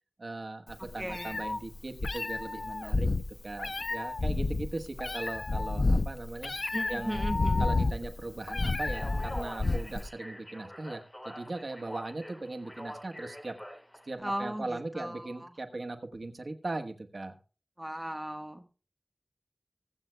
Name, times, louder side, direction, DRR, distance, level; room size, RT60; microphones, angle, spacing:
voice 1, 0.2-3.1 3.4-6.5 6.9-7.3 7.6-13.5 14.0-17.4, right 2 dB, 75° right, 6 dB, 1.2 m, -39 dB
Meow, 0.7-10.1, left 3 dB, 70° left, 0.5 m, -30 dB
voice 2, 1.0-1.3 6.7-7.7 14.2-15.5 17.8-18.6, equal, 15° right, 6 dB, 1.3 m, -37 dB
Speech, 8.8-14.2, equal, 10° left, 4.5 m, -46 dB
23.5 x 7.9 x 2.2 m, 0.36 s
wide cardioid pair, 65°, 0 cm